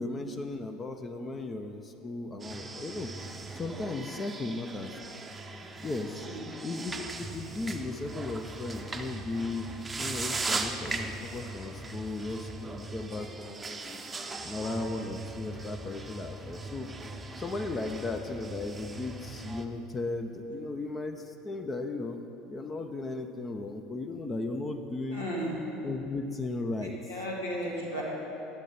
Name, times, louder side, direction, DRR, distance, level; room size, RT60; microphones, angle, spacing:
voice 1, 0.0-3.1 3.5-5.0 5.8-6.3 6.6-9.7 10.0-14.0 14.4-25.3 25.8-27.0, left 2 dB, 25° left, 6 dB, 0.6 m, -36 dB
sound 1, 2.4-19.6, right 3 dB, 20° right, 0.7 m, -39 dB
voice 2, 14.4-14.7 25.1-25.6 26.8-28.0, equal, 85° left, -5 dB, 1.9 m, -35 dB
11.5 x 8.3 x 4.2 m, 3.0 s
figure-of-eight pair, 70°, 0 cm